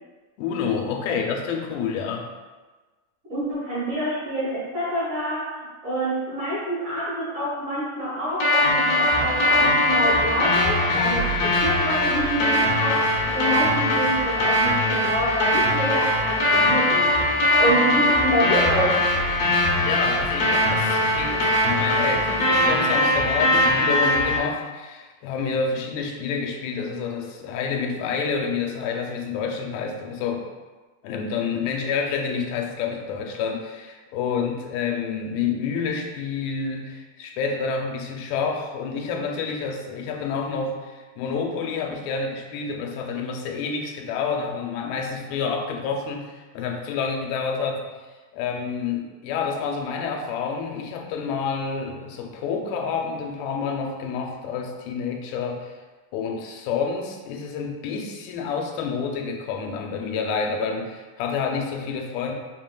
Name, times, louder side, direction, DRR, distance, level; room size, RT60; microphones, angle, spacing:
voice 1, 0.4-2.3 19.4-30.5 31.0-47.8 48.3-55.7 56.1-62.3, left 5 dB, 85° left, 2 dB, 2.4 m, -28 dB
voice 2, 3.3-17.2 17.6-19.0, equal, 55° right, -11 dB, 1.8 m, -27 dB
sound 1, 8.4-24.4, left 1 dB, 70° left, 1.6 m, -21 dB
5.0 x 3.7 x 2.2 m, 1.3 s
omnidirectional pair, 4.1 m